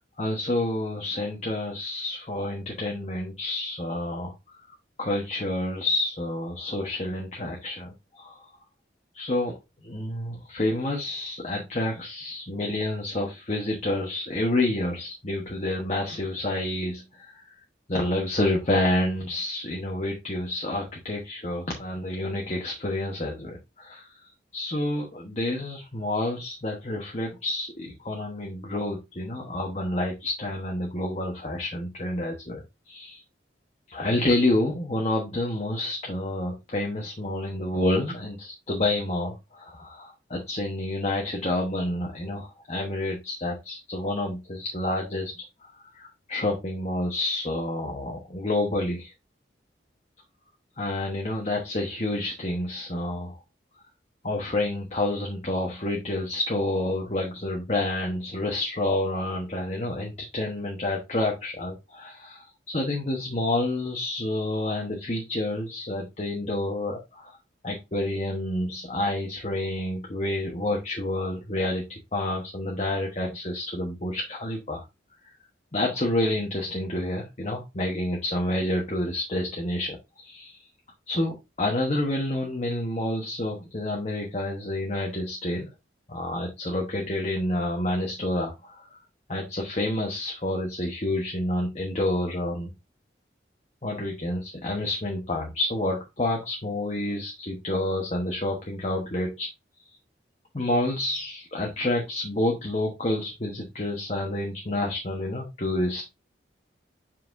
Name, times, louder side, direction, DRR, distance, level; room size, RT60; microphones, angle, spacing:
voice 1, 0.2-4.3 5.0-8.5 9.1-9.5 9.8-17.4 17.9-33.2 33.9-45.4 46.0-49.1 50.8-53.4 54.2-67.4 67.6-74.8 75.7-80.6 81.1-85.7 86.1-88.9 89.3-92.7 93.8-99.5 100.5-106.0, left 1 dB, 35° left, 0 dB, 1.1 m, -29 dB
7.3 x 5.8 x 2.6 m, 0.23 s
head